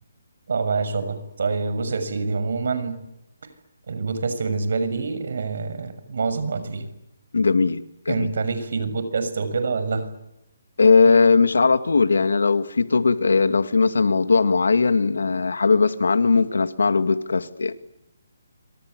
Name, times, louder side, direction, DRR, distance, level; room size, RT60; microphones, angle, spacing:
voice 1, 0.5-3.0 3.9-6.8 8.1-10.1, right 4 dB, 60° right, 11 dB, 6.4 m, -26 dB
voice 2, 7.3-8.3 10.8-17.8, left 4 dB, 85° left, 11 dB, 2.2 m, -19 dB
27.5 x 25.5 x 8.3 m, 0.86 s
hypercardioid pair, 165°, 0 cm